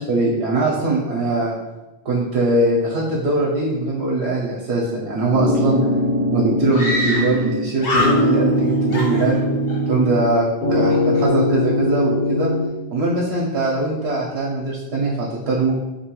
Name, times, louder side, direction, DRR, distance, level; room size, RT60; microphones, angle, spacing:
voice 1, 0.0-1.5 2.0-5.8 6.3-9.4 9.9-12.5 12.9-15.8, right 2 dB, 80° right, -3 dB, 0.8 m, -21 dB
sound 1, 5.3-7.7 8.0-10.3 10.6-12.7, left 1 dB, 70° left, 1.2 m, -20 dB
Screaming, 5.6-5.7 5.9-6.0 6.7-7.5 7.8-8.6 8.9-9.8, left 1 dB, 50° left, 0.7 m, -24 dB
2.7 x 2.2 x 2.8 m, 1.1 s
omnidirectional pair, 1.1 m